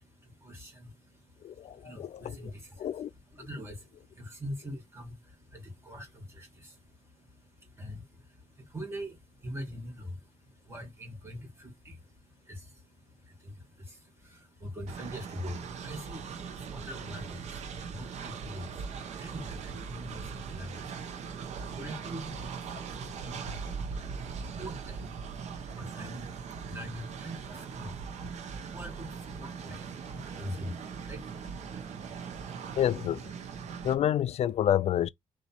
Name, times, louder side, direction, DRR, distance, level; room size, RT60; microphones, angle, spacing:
voice 1, 0.0-32.8, equal, 20° right, 2.4 m, -44 dB
voice 2, 1.4-2.5 2.8-3.1 32.8-33.2 33.8-35.1, left 10 dB, 65° left, 0.4 m, -28 dB
Train, 14.9-33.9, right 6 dB, 75° right, 0.9 m, -40 dB
4.0 x 2.6 x 4.4 m
cardioid pair, 105°, 12 cm